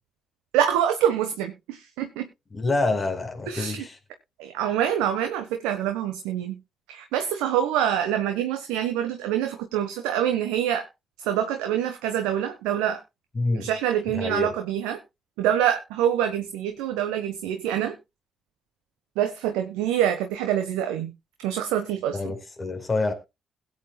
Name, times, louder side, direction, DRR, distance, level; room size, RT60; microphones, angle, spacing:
voice 1, 0.5-2.3 3.5-3.9 4.4-6.6 6.9-10.9 11.2-13.0 13.5-15.0 15.4-17.9 19.2-21.1 21.4-22.2, right 10 dB, 75° right, 1.2 m, -25 dB
voice 2, 2.5-4.0 13.3-13.7 14.1-14.5 22.1-23.1, left 2 dB, 35° left, 4.6 m, -27 dB
21.0 x 8.4 x 2.3 m
hypercardioid pair, 45°, 0 cm